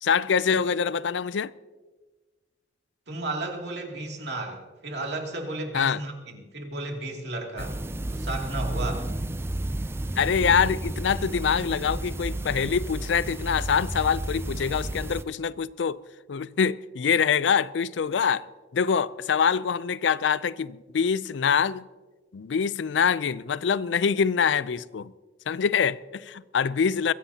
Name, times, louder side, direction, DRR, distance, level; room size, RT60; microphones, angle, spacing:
voice 1, 0.0-1.5 5.7-6.0 10.2-16.0 16.3-18.5 18.7-21.9 22.3-25.1 25.5-27.1, left 6 dB, 80° left, 0.4 m, -25 dB
voice 2, 3.1-7.8 8.1-9.1, right 2 dB, 65° right, 2.5 m, -33 dB
sound 1, 7.6-15.2, right 1 dB, 15° right, 0.4 m, -32 dB
22.5 x 15.5 x 2.8 m
head